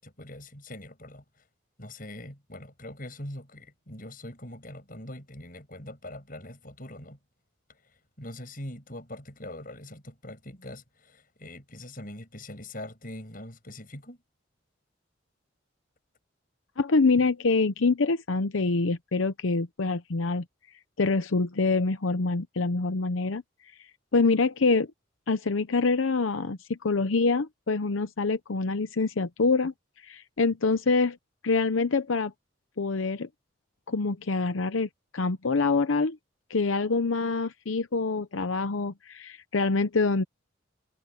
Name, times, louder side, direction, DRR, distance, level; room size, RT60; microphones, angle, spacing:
voice 1, 0.0-1.4 1.8-7.2 8.2-14.2, left 1 dB, 45° left, 7.8 m, -42 dB
voice 2, 16.8-20.4 21.0-23.4 24.1-24.9 25.3-31.2 31.4-32.3 32.8-33.3 33.9-36.2 36.5-40.2, left 3 dB, 90° left, 0.8 m, -25 dB
head